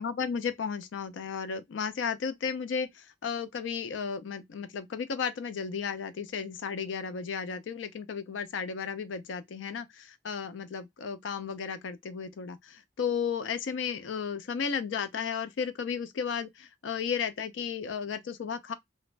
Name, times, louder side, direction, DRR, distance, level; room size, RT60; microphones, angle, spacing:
voice 1, 0.0-18.7, left 6 dB, 85° left, 0.4 m, -34 dB
2.4 x 2.0 x 3.1 m
head